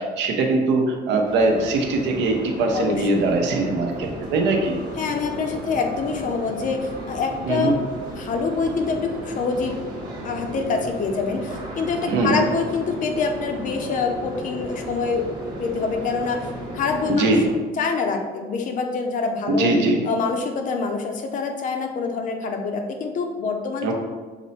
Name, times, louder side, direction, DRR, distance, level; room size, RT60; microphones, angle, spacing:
voice 1, 0.0-4.8 7.5-7.8 12.1-12.4 17.2-17.4 19.5-20.0 23.8-23.9, right 2 dB, 80° right, 2 dB, 0.8 m, -21 dB
sound 1, 1.2-17.5, right 1 dB, 25° right, 1.1 m, -34 dB
voice 2, 2.7-3.3 5.0-7.8 8.2-9.7 10.2-15.2 15.6-17.3 17.8-19.7 20.0-23.9, left 4 dB, 45° left, 4 dB, 0.5 m, -26 dB
6.0 x 2.1 x 4.1 m, 1.4 s
cardioid pair, 160°, 18 cm